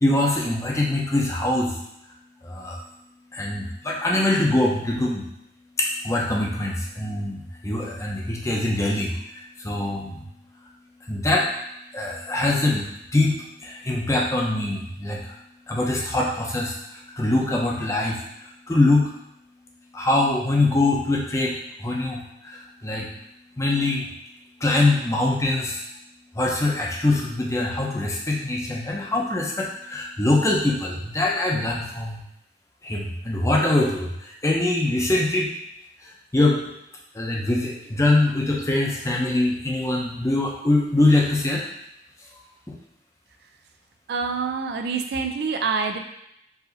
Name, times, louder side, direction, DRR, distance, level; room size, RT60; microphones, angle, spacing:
voice 1, 0.0-1.7 2.6-2.8 3.3-5.2 5.8-7.4 7.6-9.1 9.6-10.2 11.1-11.4 11.9-12.8 13.1-13.3 13.9-15.2 15.7-16.7 17.2-18.1 18.7-19.1 19.9-21.5 21.8-22.2 22.8-23.0 23.6-24.0 24.6-25.7 26.4-29.5 29.9-32.2 32.9-34.1 34.4-35.5 36.3-36.6 37.2-37.7 38.0-41.6, left 2 dB, 15° left, -2 dB, 0.6 m, -22 dB
voice 2, 44.1-46.0, right 5 dB, 65° right, 4 dB, 0.4 m, -26 dB
4.8 x 2.7 x 3.9 m, 0.79 s
head